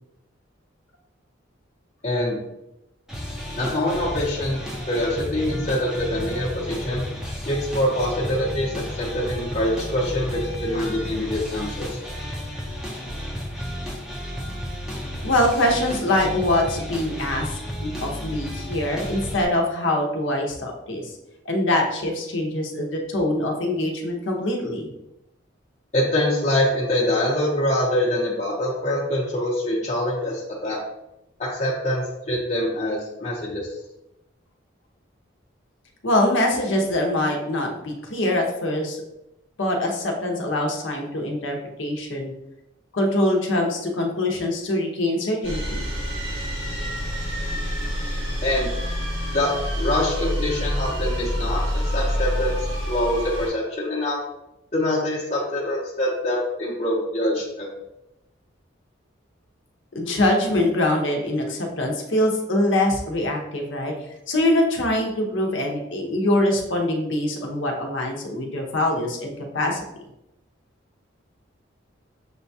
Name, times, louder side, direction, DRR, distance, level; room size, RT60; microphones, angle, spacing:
voice 1, 2.0-2.4 3.6-4.6 4.9-7.0 7.4-12.0 25.9-30.8 31.4-33.8 48.4-48.7 49.3-54.2 54.7-57.7, left 1 dB, 35° left, -6 dB, 0.8 m, -24 dB
sound 1, 3.1-19.4, equal, ahead, 0.6 m, -32 dB
voice 2, 15.2-17.5 17.8-21.1 21.5-24.9 36.0-39.0 39.6-42.3 42.9-45.9 59.9-63.9 64.3-69.8, left 1 dB, 75° left, 1 dB, 0.8 m, -23 dB
sound 2, 45.4-53.5, equal, 75° right, 1.4 m, -27 dB
6.6 x 2.3 x 2.7 m, 0.89 s
head